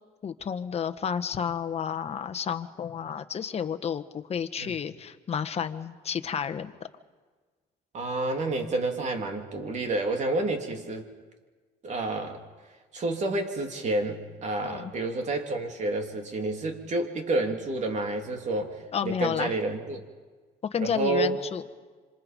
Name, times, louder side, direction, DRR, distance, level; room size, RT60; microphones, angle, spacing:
voice 1, 0.2-6.7 14.6-14.9 18.9-19.5 20.7-21.6, left 7 dB, 40° left, 9 dB, 1.3 m, -31 dB
voice 2, 7.9-11.1 11.8-12.4 12.9-20.0 20.8-21.4, right 2 dB, 45° right, 4 dB, 3.2 m, -29 dB
26.5 x 26.5 x 5.3 m, 1.4 s
cardioid pair, 110°, 17 cm